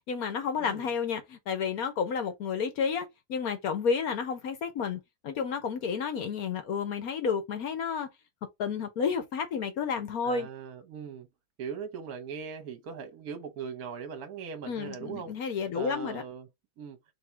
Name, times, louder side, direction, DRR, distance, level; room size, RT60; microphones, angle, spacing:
voice 1, 0.1-8.1 8.6-10.5 14.7-16.2, left 6 dB, 60° left, 1.1 m, -31 dB
voice 2, 0.6-0.9 10.2-11.3 11.6-15.4 15.7-16.5 16.8-17.0, right 6 dB, 60° right, 1.2 m, -40 dB
3.6 x 2.8 x 4.5 m
omnidirectional pair, 2.2 m